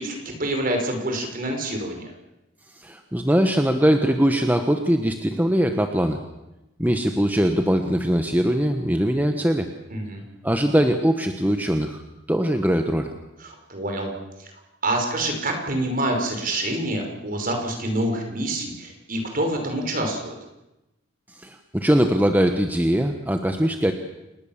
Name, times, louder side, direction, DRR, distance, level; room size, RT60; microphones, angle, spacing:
voice 1, 0.0-2.1 9.9-10.2 13.4-14.1 14.4-14.5 14.8-20.3, right 1 dB, 45° right, 4 dB, 5.5 m, -27 dB
voice 2, 2.8-6.2 6.8-9.7 10.4-12.0 12.3-13.1 21.3-23.9, equal, 10° right, 5 dB, 1.2 m, -21 dB
28.5 x 19.5 x 7.4 m, 0.96 s
head